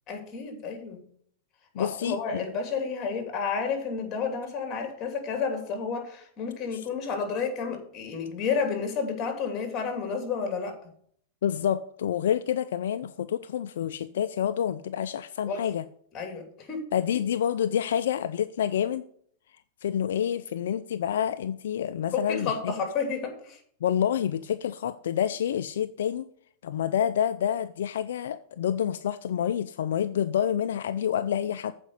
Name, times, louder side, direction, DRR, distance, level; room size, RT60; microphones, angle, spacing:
voice 1, 0.1-1.1 1.7-10.7 15.4-15.6 16.1-16.9 22.1-23.6, left 5 dB, 35° left, 5 dB, 2.9 m, -31 dB
voice 2, 1.8-2.5 6.7-6.9 11.4-15.8 16.9-19.0 19.8-22.7 23.8-26.3 26.6-31.7, left 9 dB, 80° left, 11 dB, 0.4 m, -28 dB
8.0 x 5.1 x 6.9 m, 0.62 s
hypercardioid pair, 125°, 0 cm